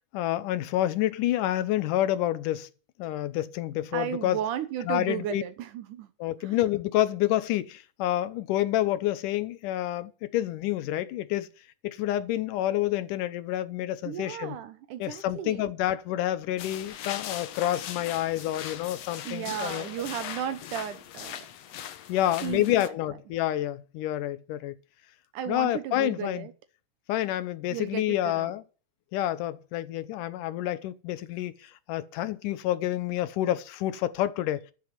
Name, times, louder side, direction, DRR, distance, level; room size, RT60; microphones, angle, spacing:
voice 1, 0.1-2.7 3.0-4.4 4.9-5.4 6.2-11.5 11.8-14.6 15.0-19.9 22.1-24.8 25.5-26.5 27.1-28.6 29.1-34.7, left 13 dB, 90° left, 2.5 m, -28 dB
voice 2, 3.9-6.1 6.4-6.6 14.1-15.6 19.3-21.5 22.4-22.9 25.3-26.5 27.7-28.5, right 10 dB, 80° right, 2.5 m, -34 dB
sound 1, 16.6-22.9, left 10 dB, 65° left, 1.8 m, -40 dB
13.0 x 6.9 x 9.8 m
omnidirectional pair, 3.6 m